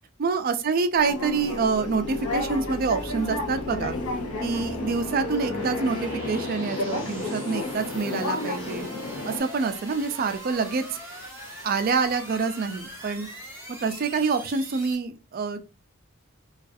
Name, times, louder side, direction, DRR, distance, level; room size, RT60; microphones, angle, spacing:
voice 1, 0.2-3.9 4.4-8.9 9.2-10.8 11.6-13.3 13.8-15.6, right 4 dB, 40° right, 0.3 m, -26 dB
sound 1, 1.0-9.4, left 2 dB, 90° left, 0.6 m, -31 dB
sound 2, 1.0-15.0, right 1 dB, 10° right, 0.8 m, -41 dB
2.4 x 2.3 x 2.4 m
head